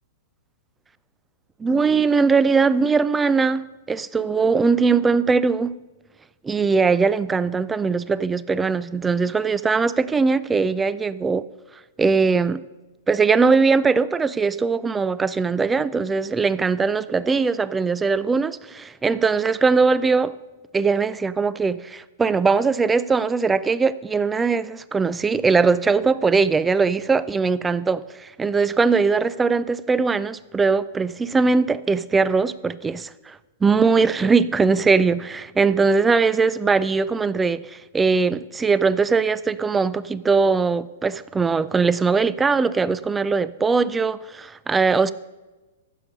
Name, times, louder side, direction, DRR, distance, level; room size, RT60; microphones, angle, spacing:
voice 1, 1.6-5.8 6.4-11.4 12.0-12.6 13.1-20.3 20.7-33.4 33.6-45.1, right 4 dB, 10° right, 17 dB, 0.3 m, -20 dB
15.0 x 6.6 x 5.3 m, 1.2 s
hypercardioid pair, 150°, 0 cm